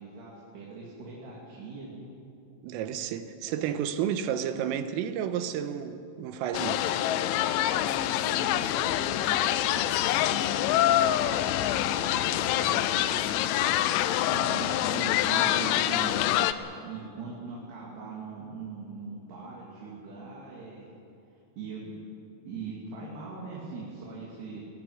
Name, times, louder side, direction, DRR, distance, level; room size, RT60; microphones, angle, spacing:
voice 1, 0.0-2.0 6.8-7.4 7.8-13.7 14.3-16.4 16.8-20.9 21.3-22.1 22.4-24.6, right 4 dB, 55° right, 4.6 m, -41 dB
voice 2, 2.6-6.8, right 9 dB, 85° right, 3.6 m, -31 dB
sound 1, 6.5-16.5, left 12 dB, 80° left, 3.0 m, -26 dB
19.0 x 18.5 x 9.8 m
omnidirectional pair, 5.9 m